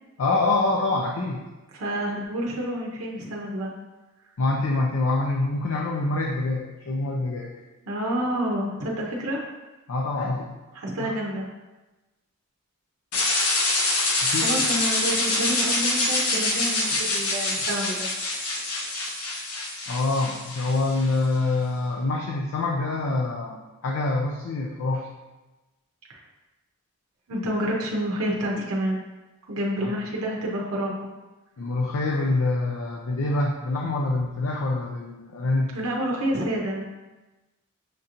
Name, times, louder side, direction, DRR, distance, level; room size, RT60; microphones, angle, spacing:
voice 1, 0.2-1.4 4.4-7.5 9.9-10.5 11.0-11.2 14.2-14.5 19.9-25.1 29.8-30.0 31.6-35.7, left 2 dB, 65° left, 0 dB, 0.4 m, -25 dB
voice 2, 1.7-3.7 7.8-9.4 10.7-11.5 14.4-18.1 26.1-26.2 27.3-29.0 29.5-31.1 35.7-36.9, right 1 dB, 85° right, -2 dB, 0.6 m, -28 dB
sound 1, 13.1-21.1, left 2 dB, 90° left, 0.8 m, -25 dB
6.5 x 2.8 x 2.5 m, 1.1 s
head